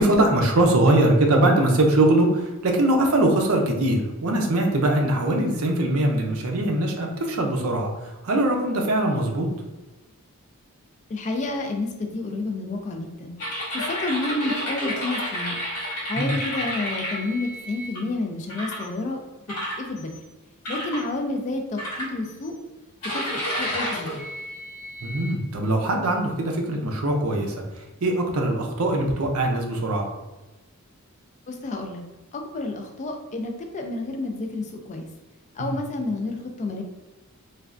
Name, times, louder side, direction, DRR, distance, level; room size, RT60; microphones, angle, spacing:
voice 1, 0.0-9.5 16.2-16.3 25.0-30.1 35.6-35.7, right 1 dB, 65° right, 2 dB, 0.5 m, -22 dB
voice 2, 11.1-13.3 13.7-15.6 16.0-19.2 19.8-20.1 20.7-22.5 23.1-24.3 31.5-32.0 32.3-35.1 35.5-36.8, left 2 dB, 35° left, 3 dB, 0.3 m, -30 dB
sound 1, 13.4-18.0 18.5-18.9 19.5-20.2 20.6-21.0 21.8-22.5 23.0-25.3, equal, 75° left, 1.1 m, -31 dB
3.2 x 2.2 x 2.4 m, 1.1 s
head